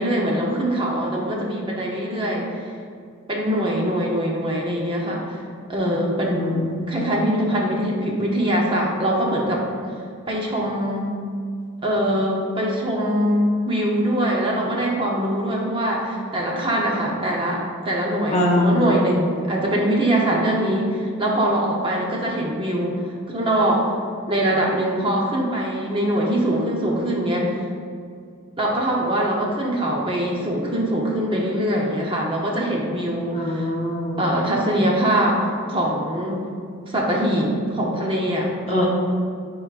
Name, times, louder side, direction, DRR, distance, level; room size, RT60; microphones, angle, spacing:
voice 1, 0.0-2.7 3.3-5.4 5.7-9.6 10.3-11.1 11.8-23.0 23.3-23.9 24.3-27.5 28.6-33.7 34.2-36.4 36.9-38.9, right 1 dB, 25° right, -2 dB, 0.8 m, -23 dB
voice 2, 6.3-7.1 18.3-19.0 33.3-34.3 38.7-38.9, left 1 dB, 30° left, -2 dB, 0.8 m, -23 dB
9.4 x 4.7 x 2.4 m, 2.3 s
head